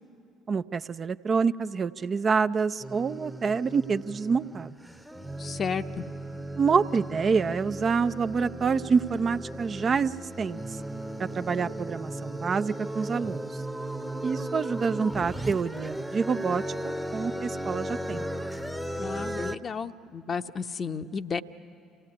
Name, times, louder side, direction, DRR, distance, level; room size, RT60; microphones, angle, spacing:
voice 1, 0.5-4.7 6.6-10.6 11.2-13.6 14.2-18.2, right 5 dB, 40° right, 10 dB, 0.5 m, -27 dB
sound 1, 2.8-19.6, right 1 dB, ahead, 0.8 m, -36 dB
voice 2, 5.4-6.0 19.0-21.4, left 5 dB, 40° left, 10 dB, 0.8 m, -32 dB
27.5 x 16.5 x 9.8 m, 2.6 s
figure-of-eight pair, 55°, 0 cm